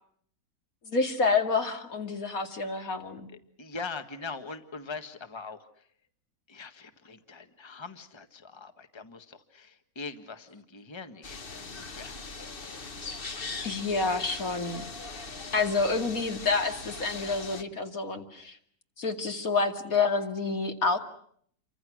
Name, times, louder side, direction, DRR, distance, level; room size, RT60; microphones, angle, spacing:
voice 1, 0.8-3.3 13.6-14.8 15.5-18.6 19.0-21.0, left 4 dB, 50° left, 5 dB, 2.7 m, -28 dB
voice 2, 3.3-5.7 6.5-13.0, left 4 dB, 15° left, 8 dB, 1.5 m, -42 dB
sound 1, 11.2-17.6, left 4 dB, 35° left, 1.2 m, -40 dB
29.0 x 25.0 x 6.3 m, 0.63 s
omnidirectional pair, 1.9 m